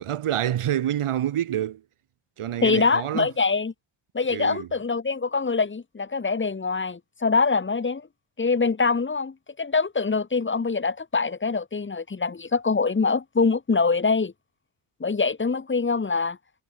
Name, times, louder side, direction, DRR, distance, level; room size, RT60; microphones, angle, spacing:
voice 1, 0.0-1.8 2.4-3.3 4.3-4.7, right 11 dB, 85° right, 3.9 m, -27 dB
voice 2, 2.6-3.7 4.1-8.1 8.4-14.3 15.0-16.4, left 4 dB, 25° left, 1.4 m, -24 dB
wide cardioid pair, 130°, 50 cm